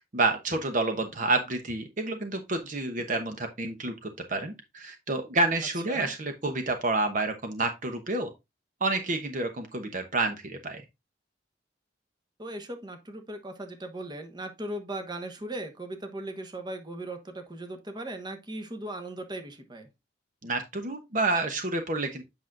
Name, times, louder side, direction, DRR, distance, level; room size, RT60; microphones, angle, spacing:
voice 1, 0.1-8.3 8.8-10.8 20.4-22.2, right 2 dB, 45° right, 0.9 m, -29 dB
voice 2, 12.4-19.9, right 1 dB, 25° right, 1.2 m, -38 dB
8.1 x 6.1 x 2.5 m
head